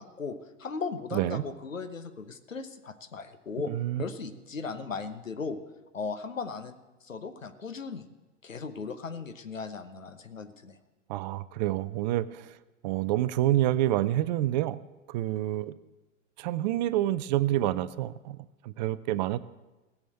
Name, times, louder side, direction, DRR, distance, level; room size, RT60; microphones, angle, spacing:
voice 1, 0.0-5.6 5.9-6.7 7.0-8.1 8.4-10.8, left 4 dB, 80° left, 9 dB, 1.1 m, -37 dB
voice 2, 1.1-1.4 3.7-4.0 11.1-12.6 12.8-14.8 15.1-15.7 16.4-19.4, right 14 dB, 35° right, 16 dB, 0.5 m, -28 dB
17.5 x 7.2 x 7.8 m, 1.1 s
figure-of-eight pair, 95°, 38 cm